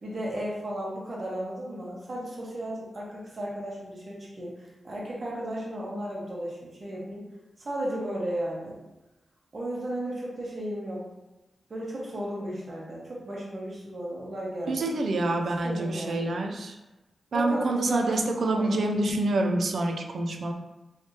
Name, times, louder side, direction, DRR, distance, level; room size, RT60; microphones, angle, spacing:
voice 1, 0.0-7.2 7.6-8.8 9.5-11.1 11.7-14.9 15.6-16.3 17.3-18.7, right 1 dB, 55° right, -4 dB, 1.2 m, -34 dB
voice 2, 14.7-16.8 17.3-20.5, right 2 dB, 75° right, 4 dB, 0.4 m, -27 dB
3.2 x 3.1 x 2.9 m, 1.0 s
cardioid pair, 50°, 0 cm